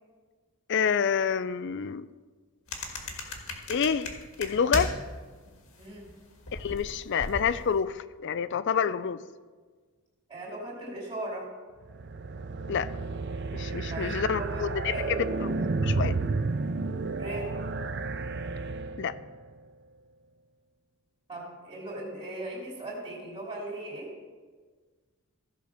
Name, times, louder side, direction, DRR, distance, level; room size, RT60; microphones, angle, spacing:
voice 1, 0.7-2.1 3.7-4.1 4.4-4.9 6.5-9.2 12.7-12.9 13.5-15.3 15.8-16.2 19.0-19.2, left 6 dB, 55° left, 15 dB, 0.4 m, -28 dB
sound 1, 2.7-5.2 5.5-7.7, left 2 dB, 70° left, 1.7 m, -36 dB
voice 2, 5.8-6.1 10.3-11.5 13.9-15.2 17.1-17.6 21.3-24.1, right 1 dB, 25° right, -4 dB, 2.7 m, -38 dB
sound 2, 11.8-19.3, right 3 dB, 50° right, 0.5 m, -31 dB
15.0 x 5.1 x 6.4 m, 1.5 s
head